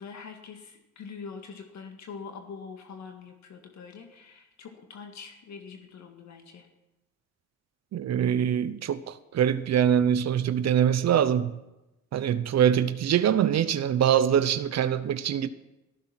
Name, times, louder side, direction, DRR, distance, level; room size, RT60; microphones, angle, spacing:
voice 1, 0.0-6.7, left 5 dB, 65° left, 1.9 m, -44 dB
voice 2, 7.9-11.6 12.1-15.5, right 9 dB, 60° right, 0.8 m, -24 dB
14.5 x 14.0 x 5.9 m
cardioid pair, 90°, 30 cm